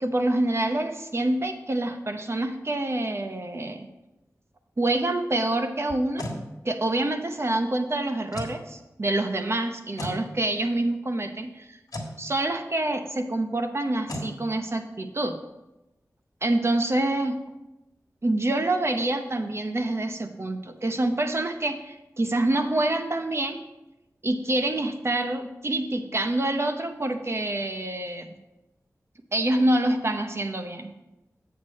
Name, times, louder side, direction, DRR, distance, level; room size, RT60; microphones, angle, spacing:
voice 1, 0.0-3.9 4.8-6.2 6.6-11.8 12.2-15.4 16.4-17.4 18.2-23.6 24.2-28.3 29.3-30.9, right 1 dB, 45° right, 6 dB, 0.9 m, -26 dB
sound 1, 5.9-6.4 8.3-8.6 10.0-10.2 11.9-12.2 14.1-14.3, left 1 dB, 80° left, 1.5 m, -33 dB
8.1 x 6.6 x 4.2 m, 0.97 s
wide cardioid pair, 55°, 6 cm